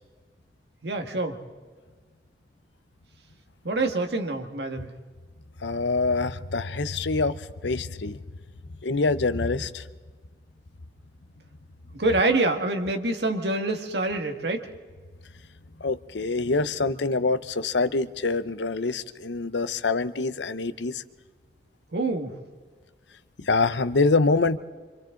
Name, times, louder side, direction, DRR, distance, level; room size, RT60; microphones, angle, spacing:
voice 1, 0.8-1.4 3.6-4.9 11.9-14.7 21.9-22.3, right 2 dB, 75° right, 5 dB, 1.9 m, -26 dB
voice 2, 5.6-7.4 7.6-8.2 8.8-9.8 15.8-21.0 23.5-24.6, left 3 dB, 90° left, 13 dB, 0.8 m, -25 dB
26.5 x 25.5 x 3.9 m, 1.5 s
head